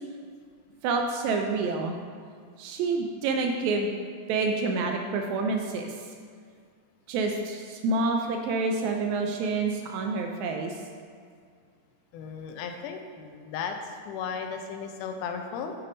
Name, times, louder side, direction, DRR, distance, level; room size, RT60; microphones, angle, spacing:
voice 1, 0.8-2.0 2.6-3.9 4.3-6.1 7.1-10.8, right 3 dB, 80° right, 3 dB, 1.7 m, -28 dB
voice 2, 12.1-13.8 14.1-15.8, left 6 dB, 85° left, 5 dB, 2.2 m, -35 dB
7.0 x 4.1 x 5.1 m, 2.1 s
omnidirectional pair, 3.6 m